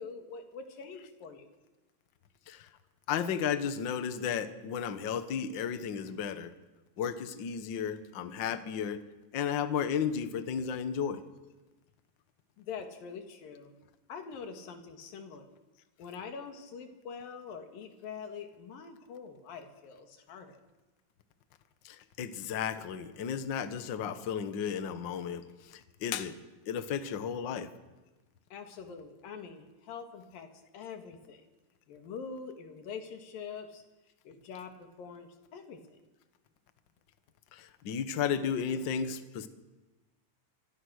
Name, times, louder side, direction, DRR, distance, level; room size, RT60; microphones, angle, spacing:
voice 1, 0.0-1.5 12.6-13.7 14.1-15.5 16.0-20.6 28.5-31.5 31.9-33.8 34.3-35.8, left 6 dB, 85° left, 6 dB, 3.8 m, -44 dB
voice 2, 3.1-6.5 7.0-9.0 9.3-11.2 21.8-26.4 26.7-27.7 37.5-39.5, left 7 dB, 60° left, 11 dB, 1.2 m, -33 dB
25.5 x 23.5 x 6.5 m, 1.2 s
omnidirectional pair, 3.9 m